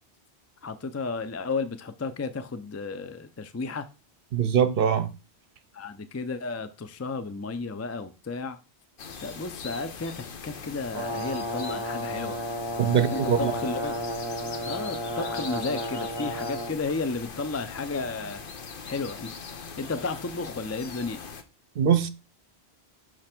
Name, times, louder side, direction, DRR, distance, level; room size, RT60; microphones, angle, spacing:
voice 1, 0.6-3.9 5.7-8.6 9.2-12.4 12.9-13.9 14.7-18.4 18.9-19.3 19.8-21.2, left 4 dB, 25° left, 0.3 m, -33 dB
voice 2, 4.3-5.1 12.8-13.5 21.8-22.1, right 8 dB, 60° right, 0.8 m, -22 dB
sound 1, 9.0-21.4, left 5 dB, 60° left, 1.0 m, -41 dB
Brass instrument, 10.9-16.7, left 1 dB, 25° right, 1.0 m, -32 dB
6.4 x 3.2 x 5.9 m
omnidirectional pair, 1.1 m